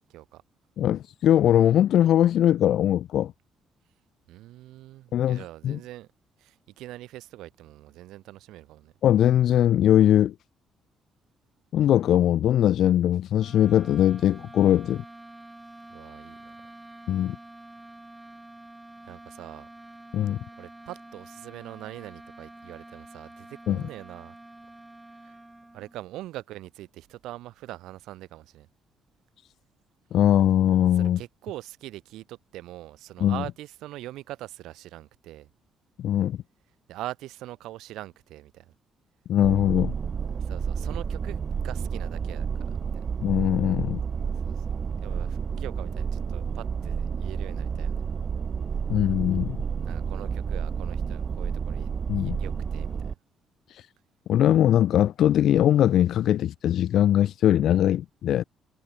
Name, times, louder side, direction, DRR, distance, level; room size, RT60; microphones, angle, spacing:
voice 1, 0.1-0.4 4.3-6.1 6.4-8.9 15.9-16.6 19.0-19.7 20.6-24.3 25.2-25.4 25.7-28.7 30.9-35.5 36.9-38.7 40.3-43.2 44.3-44.7 45.0-48.0 49.8-51.9 52.2-53.0, right 15 dB, 90° right, 3.9 m, -42 dB
voice 2, 0.8-3.3 5.1-5.8 9.0-10.3 11.7-15.0 17.1-17.4 20.1-20.4 23.7-23.8 30.1-31.2 33.2-33.4 36.0-36.4 39.3-39.9 43.2-44.0 48.9-49.6 52.1-52.4 53.7-53.9 54.3-58.4, left 11 dB, 75° left, 0.7 m, -21 dB
sound 1, 13.3-26.0, right 2 dB, 10° right, 1.6 m, -47 dB
sound 2, 39.4-53.1, right 6 dB, 45° right, 1.2 m, -30 dB
cardioid pair, 90°, 0 cm